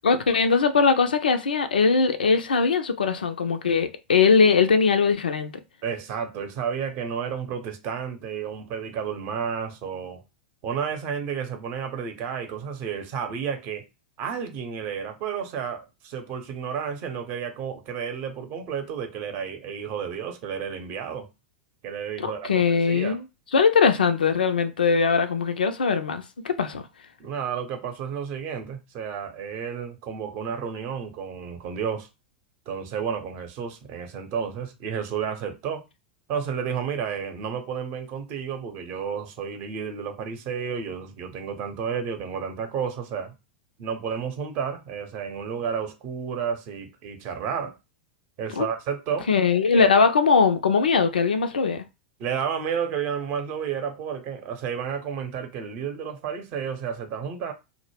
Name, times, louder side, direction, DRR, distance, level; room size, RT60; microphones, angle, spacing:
voice 1, 0.0-5.5 22.2-23.2 23.5-26.9 48.6-48.7 49.3-51.8, left 5 dB, 75° left, 0.4 m, -21 dB
voice 2, 5.8-10.2 10.6-13.8 14.2-21.3 21.8-23.2 27.2-32.1 32.7-35.8 36.3-43.3 43.8-47.7 48.4-49.3 49.7-49.9 52.2-57.5, right 7 dB, 40° right, 0.7 m, -31 dB
2.1 x 2.0 x 3.2 m
figure-of-eight pair, 95°, 5 cm